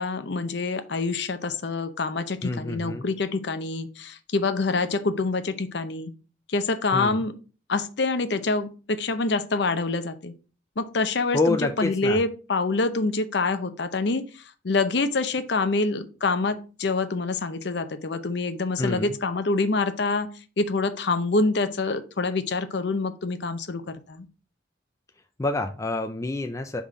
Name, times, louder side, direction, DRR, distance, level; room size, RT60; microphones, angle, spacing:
voice 1, 0.0-6.1 6.5-7.3 7.7-10.3 10.8-20.3 20.6-24.3, left 3 dB, 60° left, 10 dB, 0.7 m, -26 dB
voice 2, 2.4-3.1 6.9-7.2 11.3-12.2 18.8-19.1 25.4-26.8, left 2 dB, 15° left, 6 dB, 0.4 m, -27 dB
5.7 x 3.6 x 4.8 m, 0.35 s
head